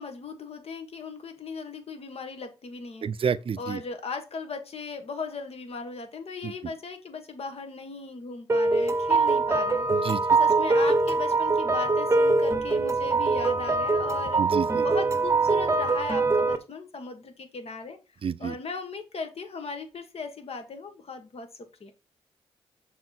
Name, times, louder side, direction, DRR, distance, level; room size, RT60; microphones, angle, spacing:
voice 1, 0.0-3.1 3.6-18.0 18.4-21.5 21.8-21.9, left 4 dB, 55° left, 1.6 m, -37 dB
voice 2, 3.0-3.8 6.4-6.5 9.9-10.2 14.4-14.8 18.2-18.6, right 7 dB, 50° right, 0.5 m, -29 dB
sound 1, 8.5-16.6, right 3 dB, 25° right, 0.8 m, -23 dB
6.4 x 3.8 x 4.3 m
cardioid pair, 60°, 12 cm